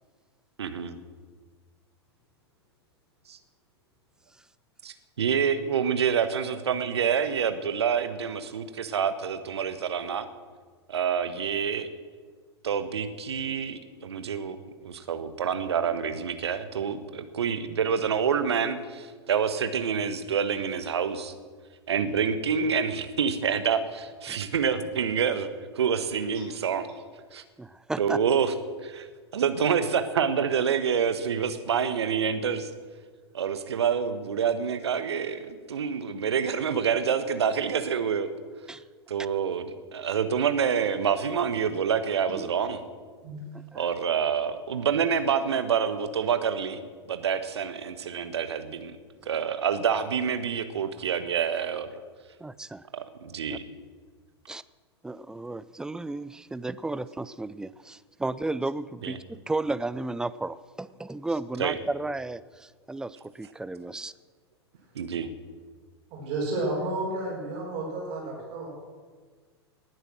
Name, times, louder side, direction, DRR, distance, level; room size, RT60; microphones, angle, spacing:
voice 1, 0.6-1.0 3.3-3.4 4.8-10.3 10.9-11.9 12.6-14.6 14.8-21.3 21.9-25.5 25.7-26.9 27.3-27.4 28.0-28.5 28.8-29.1 29.3-32.7 33.3-38.3 39.1-39.7 39.9-42.8 43.7-49.0 49.3-52.0 52.9-53.6 59.0-59.2 61.6-61.8 64.9-65.3, right 7 dB, 70° right, 11 dB, 1.2 m, -27 dB
voice 2, 27.6-28.2 38.7-38.8 43.5-43.9 52.4-52.9 54.5-54.6 55.0-64.1, right 2 dB, 5° right, 17 dB, 0.4 m, -33 dB
voice 3, 66.1-68.7, right 2 dB, 40° right, -5 dB, 5.4 m, -31 dB
19.0 x 9.7 x 6.3 m, 1.6 s
figure-of-eight pair, 100°, 14 cm